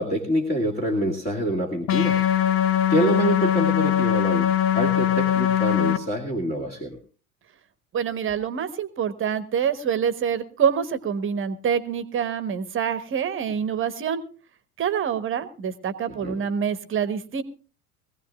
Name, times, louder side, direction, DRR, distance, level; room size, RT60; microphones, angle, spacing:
voice 1, 0.0-2.2 2.9-4.5 4.7-7.0 16.2-16.4, right 1 dB, 20° left, 0 dB, 2.1 m, -26 dB
sound 1, 1.9-6.0, left 10 dB, 50° left, 1.2 m, -21 dB
voice 2, 7.9-14.2 14.8-17.4, right 7 dB, 30° right, 13 dB, 1.2 m, -26 dB
22.0 x 16.5 x 2.4 m, 0.38 s
figure-of-eight pair, 70°, 44 cm